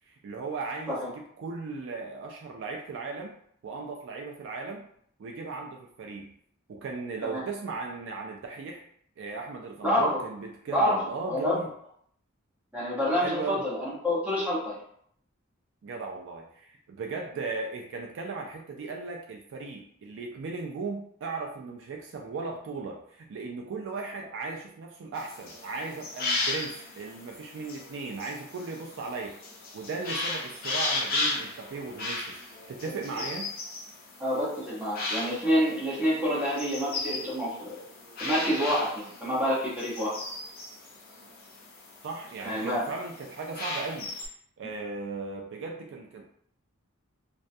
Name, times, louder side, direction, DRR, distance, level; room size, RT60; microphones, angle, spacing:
voice 1, 0.1-1.0 1.4-3.3 3.6-4.9 5.2-6.3 6.7-8.8 9.2-11.7 13.2-13.6 15.8-29.4 29.7-32.4 32.7-33.5 42.0-44.1 44.6-46.2, right 4 dB, 65° right, 2 dB, 0.3 m, -37 dB
voice 2, 9.8-10.2 10.7-11.6 12.7-14.8 32.9-33.0 34.2-37.9 38.2-40.2 42.4-42.9, equal, 5° right, -7 dB, 0.9 m, -28 dB
sound 1, 25.2-44.3, left 2 dB, 45° left, 0.5 m, -36 dB
2.2 x 2.2 x 2.6 m, 0.65 s
head